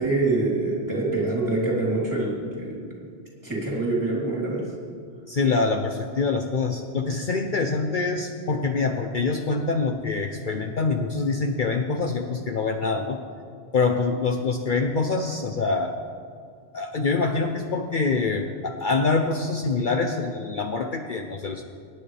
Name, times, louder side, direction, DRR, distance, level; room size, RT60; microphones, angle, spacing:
voice 1, 0.0-2.9 3.4-4.7, right 2 dB, 20° right, -5 dB, 3.8 m, -25 dB
voice 2, 5.3-13.2 13.7-15.9 16.7-21.6, left 4 dB, 55° left, 3 dB, 0.9 m, -25 dB
25.0 x 10.0 x 3.4 m, 2.3 s
omnidirectional pair, 1.1 m